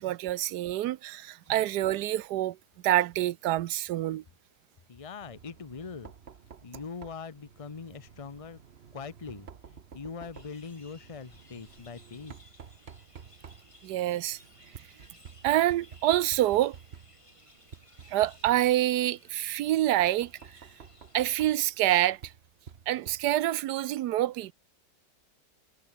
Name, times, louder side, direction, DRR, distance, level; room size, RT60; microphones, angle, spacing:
voice 1, 0.0-2.6 2.8-4.2 13.8-14.4 15.4-16.8 18.1-20.3 21.1-22.3 22.9-24.5, right 14 dB, 70° right, 1.2 m, -26 dB
voice 2, 4.9-6.1 6.6-8.6 8.9-12.4, left 5 dB, 40° left, 0.5 m, -42 dB
Knock, 5.2-23.6, right 7 dB, 40° right, 1.2 m, -51 dB
sound 1, 10.3-21.3, left 2 dB, 15° left, 2.2 m, -59 dB
omnidirectional pair, 1.9 m